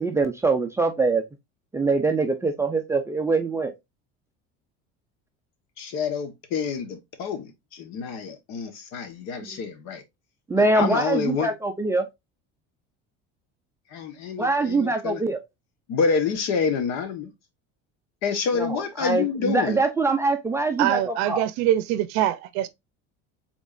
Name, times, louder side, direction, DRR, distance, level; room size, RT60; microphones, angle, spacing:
voice 1, 0.0-1.2 1.7-3.7 9.4-9.6 10.5-12.0 14.4-15.4 18.6-21.5, right 3 dB, 10° right, 0.4 m, -23 dB
voice 2, 5.8-10.0 10.6-11.5 13.9-15.2 15.9-17.3 18.2-19.8, left 5 dB, 60° left, 1.3 m, -27 dB
voice 3, 20.8-22.7, right 12 dB, 70° right, 0.6 m, -23 dB
5.1 x 3.7 x 2.5 m
cardioid pair, 155°, 30 cm